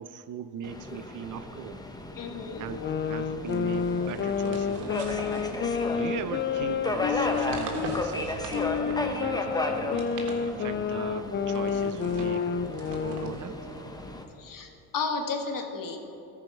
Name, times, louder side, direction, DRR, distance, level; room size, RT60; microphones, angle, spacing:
voice 1, 0.0-1.8 2.6-2.8 3.1-5.4 5.9-10.1 10.5-12.5 12.9-13.7, right 9 dB, 40° right, 13 dB, 0.6 m, -39 dB
Subway metro underground, 0.6-14.2, left 2 dB, 10° left, 0.9 m, -35 dB
voice 2, 2.2-2.6 14.4-16.0, left 4 dB, 45° left, 4 dB, 1.4 m, -33 dB
sound 1, 2.6-8.0 8.5-13.4, left 7 dB, 25° left, 0.4 m, -30 dB
sound 2, 3.4-6.2 7.0-9.3 9.8-10.9 11.5-14.4, right 3 dB, 85° right, 1.4 m, -43 dB
13.5 x 4.9 x 5.9 m, 2.9 s
supercardioid pair, 80°, 46 cm